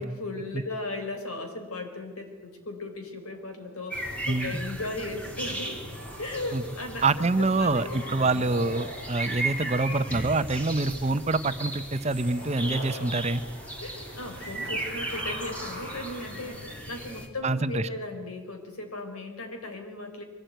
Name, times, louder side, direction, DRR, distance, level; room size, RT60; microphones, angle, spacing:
voice 1, 0.0-5.8 6.2-8.5 13.8-20.2, left 2 dB, 85° left, 5 dB, 4.3 m, -37 dB
sound 1, 3.2-4.0 5.4-6.8 7.3-11.4 11.7-16.8, equal, 50° left, 7.3 m, -44 dB
sound 2, 3.9-17.3, right 1 dB, 5° left, 2.2 m, -37 dB
voice 2, 4.3-4.6 6.5-6.6 7.0-13.4 17.4-17.9, right 3 dB, 30° right, 12 dB, 0.7 m, -26 dB
23.0 x 17.5 x 9.2 m, 1.4 s
head